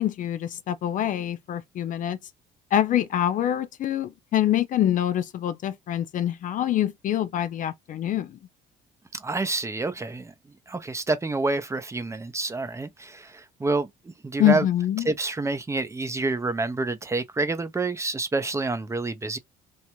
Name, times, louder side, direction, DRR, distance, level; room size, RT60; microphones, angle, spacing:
voice 1, 0.0-2.2 2.7-8.4 14.4-15.1, left 11 dB, 50° left, 0.4 m, -25 dB
voice 2, 9.1-10.3 10.7-14.7 15.0-19.4, right 3 dB, 15° right, 0.5 m, -28 dB
3.2 x 2.6 x 3.0 m
cardioid pair, 110°, 17 cm